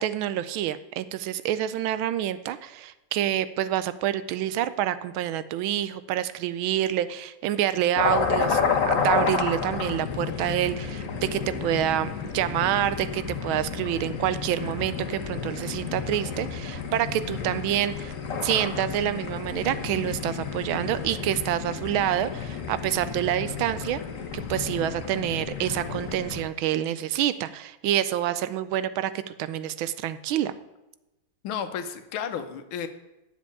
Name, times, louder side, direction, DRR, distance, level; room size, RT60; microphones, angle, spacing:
voice 1, 0.0-8.6 8.9-18.1 18.4-24.0 24.5-30.5, right 12 dB, 85° right, 14 dB, 1.4 m, -27 dB
sound 1, 8.0-26.4, left 5 dB, 45° left, 1.3 m, -31 dB
voice 2, 31.4-32.9, left 8 dB, 85° left, 9 dB, 1.7 m, -32 dB
7.6 x 7.2 x 8.5 m, 0.98 s
omnidirectional pair, 2.2 m